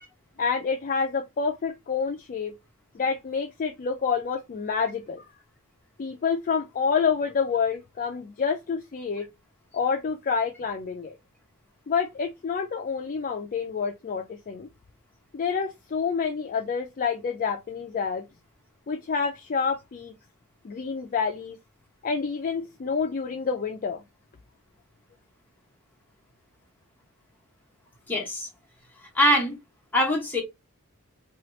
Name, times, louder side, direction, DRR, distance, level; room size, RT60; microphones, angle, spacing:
voice 1, 0.4-2.5 2.9-5.2 6.0-9.3 9.7-11.1 11.9-14.7 15.3-18.2 18.9-20.1 20.6-21.6 22.0-24.0, left 5 dB, 40° left, 0.4 m, -28 dB
voice 2, 28.1-28.5 29.1-29.5 29.9-30.4, equal, 10° left, 1.0 m, -22 dB
2.8 x 2.4 x 3.0 m
head